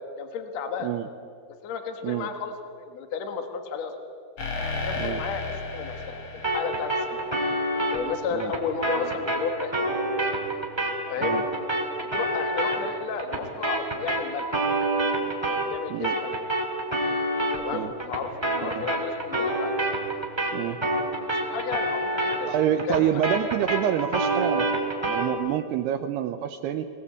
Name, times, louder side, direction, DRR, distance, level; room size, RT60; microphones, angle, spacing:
voice 1, 0.2-0.9 1.6-3.9 4.7-7.3 7.9-9.9 11.1-11.4 12.0-14.6 15.4-16.4 17.6-19.7 21.2-23.2, left 6 dB, 75° left, 6 dB, 1.5 m, -33 dB
sound 1, 4.4-8.0, left 3 dB, 50° left, 1.5 m, -34 dB
sound 2, 6.4-15.8 16.0-25.3, right 1 dB, 10° right, 1.6 m, -28 dB
voice 2, 22.5-26.9, right 10 dB, 85° right, 8 dB, 2.3 m, -27 dB
22.5 x 19.0 x 8.5 m, 2.3 s
omnidirectional pair, 5.5 m